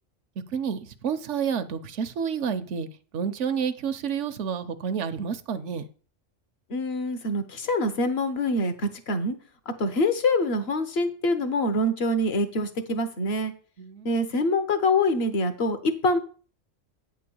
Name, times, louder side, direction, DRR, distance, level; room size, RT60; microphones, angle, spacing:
voice 1, 0.5-2.9 3.1-5.8 13.8-14.1, right 7 dB, 75° right, 1.0 m, -29 dB
voice 2, 6.7-9.4 9.8-13.5 14.0-16.2, left 1 dB, 55° left, 1.2 m, -25 dB
9.1 x 3.8 x 6.9 m
omnidirectional pair, 1.3 m